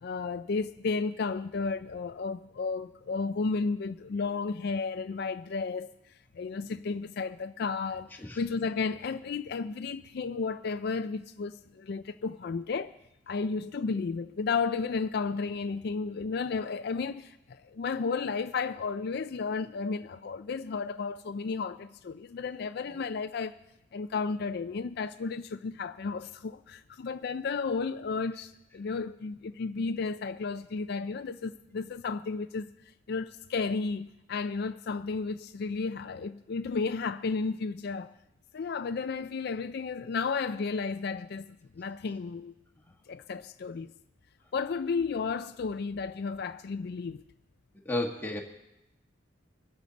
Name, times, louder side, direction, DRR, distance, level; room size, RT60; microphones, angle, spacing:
voice 1, 0.0-5.9 6.3-12.9 13.3-23.6 23.9-32.7 33.1-38.1 38.5-42.5 43.1-43.9 44.5-47.2, left 4 dB, 55° left, 0.4 m, -33 dB
voice 2, 47.8-48.4, left 1 dB, 10° left, 1.5 m, -32 dB
23.0 x 8.4 x 4.0 m
head